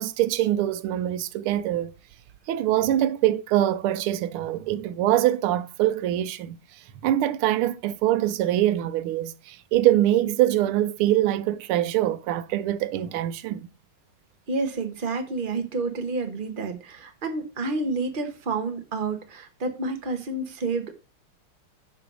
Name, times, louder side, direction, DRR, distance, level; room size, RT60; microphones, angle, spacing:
voice 1, 0.0-1.9 2.5-13.7, right 13 dB, 90° right, 1.6 m, -24 dB
voice 2, 14.5-20.9, right 3 dB, 30° right, 1.3 m, -29 dB
8.1 x 5.5 x 6.2 m
omnidirectional pair, 2.3 m